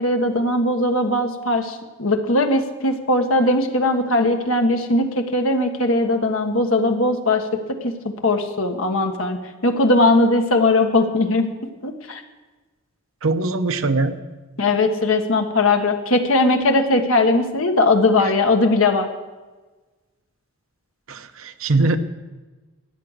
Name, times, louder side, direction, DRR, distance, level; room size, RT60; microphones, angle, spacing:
voice 1, 0.0-7.4 7.7-7.9 8.2-11.5 11.8-12.2 14.6-19.1, left 2 dB, 80° left, 5 dB, 1.4 m, -19 dB
voice 2, 13.2-14.2 21.1-22.0, right 3 dB, 75° right, 9 dB, 0.8 m, -21 dB
14.0 x 9.6 x 6.5 m, 1.2 s
head